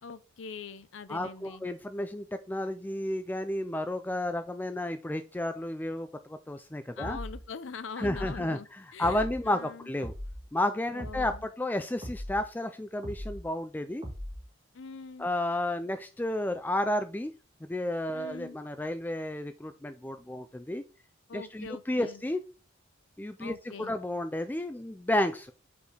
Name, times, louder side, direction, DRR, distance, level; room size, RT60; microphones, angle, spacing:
voice 1, 0.0-1.6 7.0-8.7 8.9-9.9 10.9-11.4 14.7-15.3 18.1-18.6 21.3-22.2 23.4-23.9, left 5 dB, 75° left, 0.5 m, -43 dB
voice 2, 1.1-7.2 8.0-10.1 10.5-14.0 15.2-17.3 17.7-20.8 21.3-22.4 23.2-25.5, left 1 dB, 10° left, 0.3 m, -32 dB
sound 1, 7.0-7.4 8.0-8.4 9.0-9.4 10.0-10.4 11.0-11.4 12.0-12.4 13.0-13.4 14.0-14.4, equal, 30° right, 1.9 m, -39 dB
5.2 x 4.7 x 4.9 m
head